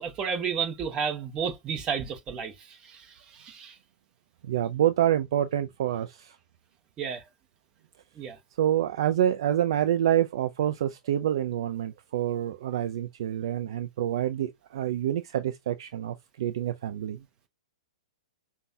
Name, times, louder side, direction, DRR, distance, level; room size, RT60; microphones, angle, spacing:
voice 1, 0.0-3.7 7.0-7.2 8.2-8.4, right 6 dB, 25° right, 0.9 m, -32 dB
voice 2, 4.4-6.4 8.6-17.2, right 11 dB, 55° right, 0.4 m, -27 dB
5.2 x 2.2 x 2.7 m
figure-of-eight pair, 110°, 3 cm